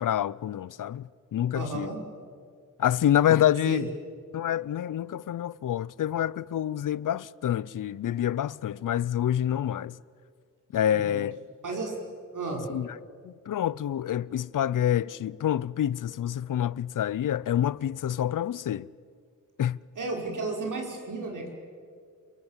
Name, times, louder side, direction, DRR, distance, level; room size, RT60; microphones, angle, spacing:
voice 1, 0.0-1.9 2.8-3.9 4.3-10.0 10.7-11.4 12.7-13.0 13.2-18.9 19.6-19.8, left 10 dB, 75° left, 0.6 m, -27 dB
voice 2, 1.5-2.0 3.7-3.9 10.9-11.2 11.6-11.9 12.3-12.6 20.0-21.5, right 3 dB, 70° right, 5.2 m, -33 dB
28.0 x 23.5 x 7.4 m
wide cardioid pair, 100°, 32 cm